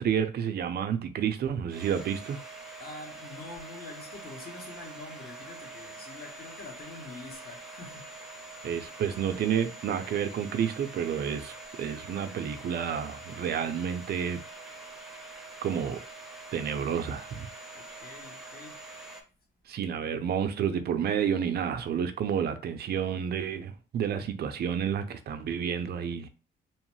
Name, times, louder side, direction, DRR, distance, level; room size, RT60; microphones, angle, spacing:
voice 1, 0.0-2.4 8.6-14.4 15.6-16.0 16.5-17.5 19.7-26.3, right 8 dB, 55° right, 0.5 m, -30 dB
Domestic sounds home sounds, 1.7-19.2, right 2 dB, ahead, 0.7 m, -45 dB
voice 2, 2.8-8.2 17.7-18.8, left 3 dB, 50° left, 1.0 m, -45 dB
2.9 x 2.1 x 3.1 m
cardioid pair, 90°, 20 cm